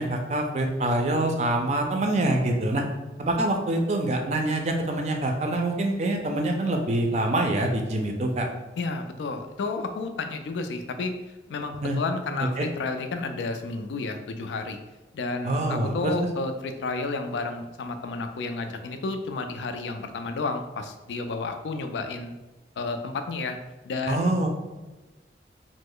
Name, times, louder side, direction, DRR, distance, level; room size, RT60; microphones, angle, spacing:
voice 1, 0.0-2.8 3.2-8.5 11.8-12.0 12.4-12.7 15.4-16.1 24.1-24.5, right 1 dB, 40° right, 3 dB, 0.4 m, -25 dB
voice 2, 8.8-11.1 11.5-14.8 15.1-22.4 22.8-23.6 23.8-24.5, left 3 dB, 90° left, 7 dB, 0.3 m, -31 dB
3.0 x 2.0 x 3.7 m, 1.1 s
head